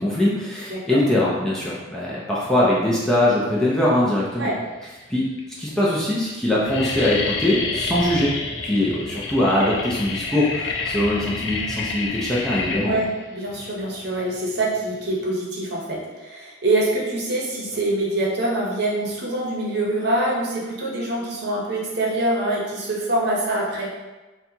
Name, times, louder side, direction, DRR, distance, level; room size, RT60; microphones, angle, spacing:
voice 1, 0.0-4.5 5.1-5.3 5.6-8.3 8.6-13.0, left 1 dB, 5° left, -7 dB, 0.5 m, -22 dB
voice 2, 0.7-1.0 4.4-4.6 12.8-23.9, right 1 dB, 55° right, -4 dB, 0.8 m, -25 dB
sound 1, 4.1-4.6 5.3-5.4 5.7-6.0 6.3-15.2, left 4 dB, 70° left, 0.5 m, -29 dB
4.1 x 2.3 x 2.7 m, 1.2 s
head